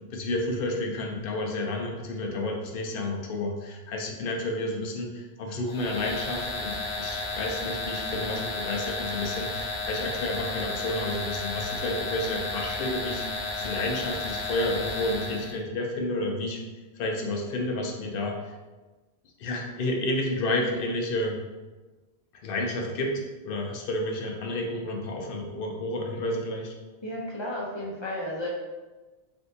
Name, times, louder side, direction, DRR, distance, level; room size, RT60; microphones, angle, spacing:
voice 1, 0.0-16.6 16.9-18.5 19.4-21.4 22.4-26.7, left 1 dB, 65° left, 1 dB, 0.7 m, -31 dB
sound 1, 5.7-15.6, left 3 dB, 85° left, 1.1 m, -33 dB
voice 2, 27.0-28.5, left 1 dB, 35° left, -3 dB, 0.5 m, -33 dB
3.3 x 2.6 x 2.6 m, 1.2 s
omnidirectional pair, 1.0 m